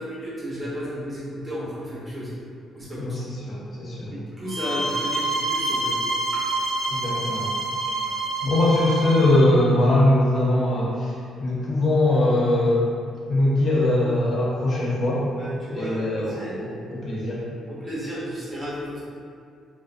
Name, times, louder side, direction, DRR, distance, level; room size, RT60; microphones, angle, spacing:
voice 1, 0.0-2.3 2.7-3.2 4.4-5.9 6.3-6.4 15.4-16.6 17.7-19.0, equal, 15° right, -9 dB, 0.7 m, -33 dB
voice 2, 3.0-4.2 6.9-7.5 8.4-11.1 11.4-12.9 13.3-15.2 15.7-17.4, left 1 dB, 55° left, -6 dB, 0.7 m, -21 dB
sound 1, 4.5-9.4, right 2 dB, 70° right, 0.8 m, -27 dB
2.4 x 2.1 x 2.5 m, 2.2 s
cardioid pair, 90°, 0 cm